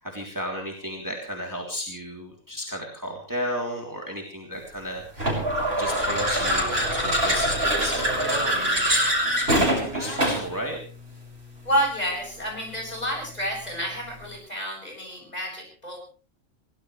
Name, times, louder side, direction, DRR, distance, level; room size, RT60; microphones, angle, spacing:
voice 1, 0.0-5.4 5.8-8.8 9.5-10.8, equal, 15° right, 0 dB, 3.3 m, -34 dB
sound 1, 5.2-10.6, right 1 dB, 45° right, 6.2 m, -24 dB
voice 2, 9.9-10.3 11.6-16.0, equal, 30° left, -1 dB, 8.1 m, -30 dB
23.0 x 18.0 x 3.3 m, 0.38 s
omnidirectional pair, 1.4 m